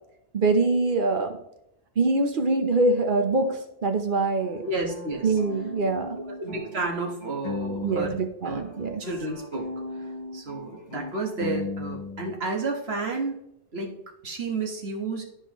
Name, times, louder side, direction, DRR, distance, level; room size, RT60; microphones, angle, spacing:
voice 1, 0.3-1.4 2.0-4.6 5.2-6.1 7.8-9.0, right 3 dB, 55° right, 6 dB, 1.0 m, -24 dB
sound 1, 4.4-8.3 8.5-12.4, left 3 dB, 45° left, 1.0 m, -37 dB
voice 2, 4.6-5.4 6.4-8.2 8.4-8.6 9.0-9.7 10.3-13.4 13.7-13.9 14.2-15.2, right 3 dB, 75° right, 2 dB, 1.6 m, -31 dB
12.5 x 4.6 x 3.0 m, 0.76 s
omnidirectional pair, 1.1 m